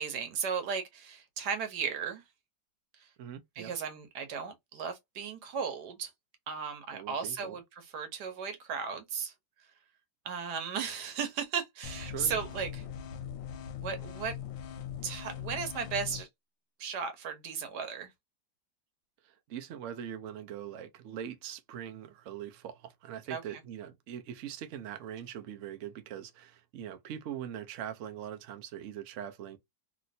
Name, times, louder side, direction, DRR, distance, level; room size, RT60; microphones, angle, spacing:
voice 1, 0.0-2.2 3.0-3.1 3.6-6.1 6.5-9.3 10.2-12.8 13.7-14.4 15.0-16.3 16.8-18.1 23.3-23.4, right 6 dB, 65° right, 1.3 m, -35 dB
voice 2, 3.2-3.7 6.9-7.6 12.1-12.4 19.2-29.6, right 10 dB, 80° right, 0.6 m, -42 dB
sound 1, 11.8-16.2, left 9 dB, 90° left, 1.3 m, -41 dB
3.1 x 2.8 x 2.6 m
omnidirectional pair, 2.1 m